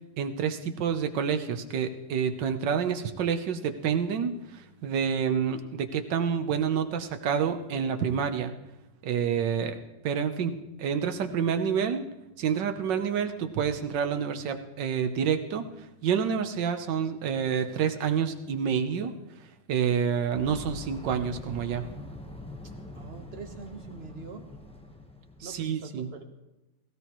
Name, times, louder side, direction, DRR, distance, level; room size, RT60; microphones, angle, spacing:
voice 1, 0.2-8.5 9.0-12.0 12.4-15.7 16.0-19.1 19.7-21.9 25.4-26.1, right 7 dB, 65° right, 8 dB, 1.5 m, -28 dB
sound 1, 20.3-25.7, left 1 dB, 5° left, 0.6 m, -43 dB
voice 2, 22.9-24.4 25.4-26.2, right 4 dB, 35° right, 5 dB, 1.1 m, -44 dB
17.5 x 16.5 x 3.1 m, 0.96 s
omnidirectional pair, 2.2 m